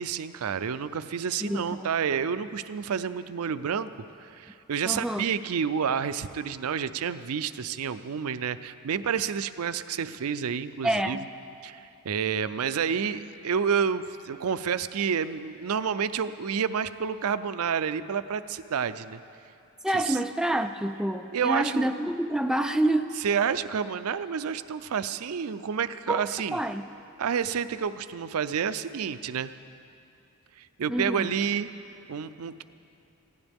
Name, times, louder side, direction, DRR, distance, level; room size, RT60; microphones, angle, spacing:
voice 1, 0.0-3.9 4.2-11.2 11.6-19.2 19.9-20.2 21.3-21.9 23.2-26.6 27.2-29.5 30.6-31.7 32.1-32.6, right 7 dB, 80° right, 13 dB, 0.5 m, -29 dB
voice 2, 1.4-1.9 4.9-5.3 10.8-11.2 19.8-23.2 26.1-26.8 30.9-31.3, right 1 dB, 5° right, 6 dB, 0.4 m, -27 dB
21.0 x 15.5 x 3.5 m, 2.6 s
head